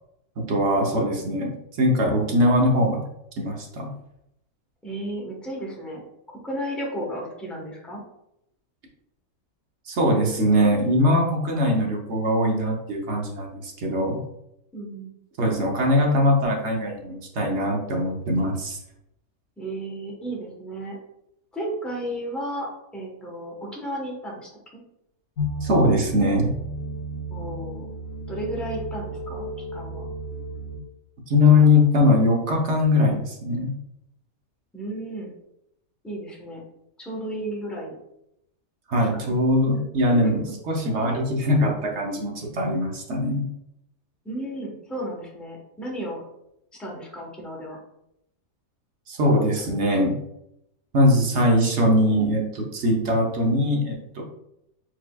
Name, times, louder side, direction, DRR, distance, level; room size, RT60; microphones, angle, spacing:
voice 1, 0.4-3.0 3.4-3.9 9.9-14.2 15.4-18.8 25.6-26.5 31.3-33.7 38.9-43.5 49.1-50.2 50.9-54.2, left 1 dB, 55° right, 0 dB, 1.1 m, -21 dB
voice 2, 4.8-6.0 6.4-8.0 14.7-15.1 19.6-21.0 21.5-24.5 27.3-27.9 28.3-30.1 34.7-35.3 36.0-36.6 37.0-38.0 39.0-39.4 40.2-40.3 44.2-46.2 46.8-47.8, right 1 dB, ahead, -3 dB, 0.9 m, -33 dB
sound 1, 25.4-30.8, right 1 dB, 60° left, 1.7 m, -33 dB
4.5 x 4.1 x 2.3 m, 0.81 s
omnidirectional pair, 1.5 m